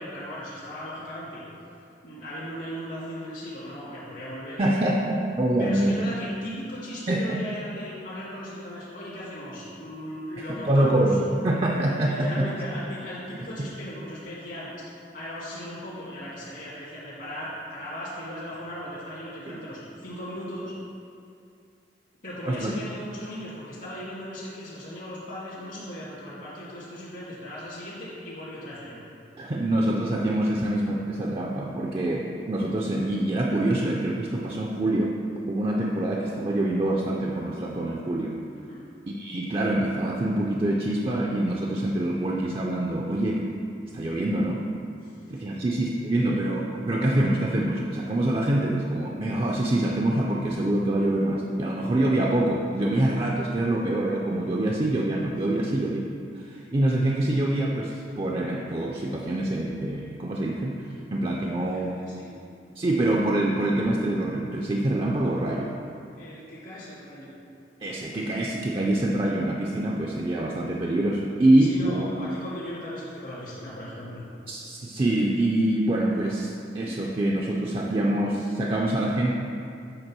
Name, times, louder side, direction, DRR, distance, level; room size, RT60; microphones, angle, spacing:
voice 1, 0.0-1.4 2.0-4.6 5.6-11.2 12.0-14.7 15.1-20.7 22.2-29.1 38.7-38.8 45.0-45.7 46.2-46.3 55.5-55.7 61.4-62.4 66.1-67.3 71.7-74.2, equal, 65° left, -9 dB, 1.7 m, -38 dB
voice 2, 4.6-6.0 7.1-7.4 10.4-12.5 13.6-13.7 19.5-19.6 22.5-22.7 29.4-35.2 35.5-38.4 39.1-43.5 43.9-44.6 45.3-56.0 56.3-61.9 62.8-65.7 67.8-72.1 74.5-79.3, right 1 dB, 30° right, -1 dB, 0.4 m, -25 dB
8.0 x 3.7 x 6.0 m, 2.5 s
head